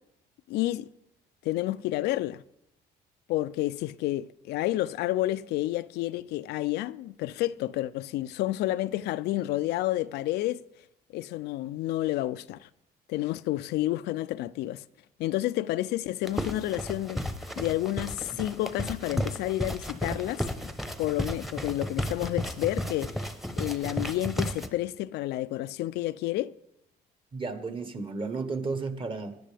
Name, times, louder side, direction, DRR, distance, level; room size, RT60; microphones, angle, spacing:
voice 1, 0.5-0.9 1.4-2.4 3.3-10.6 11.1-12.7 13.1-14.8 15.2-17.2 17.6-20.5 21.0-23.1 23.6-26.5, left 15 dB, 80° left, 0.4 m, -30 dB
sound 1, 16.2-24.7, equal, ahead, 0.9 m, -33 dB
voice 2, 27.3-29.4, right 4 dB, 30° right, 1.2 m, -33 dB
18.0 x 10.5 x 3.4 m
cardioid pair, 110°, 17 cm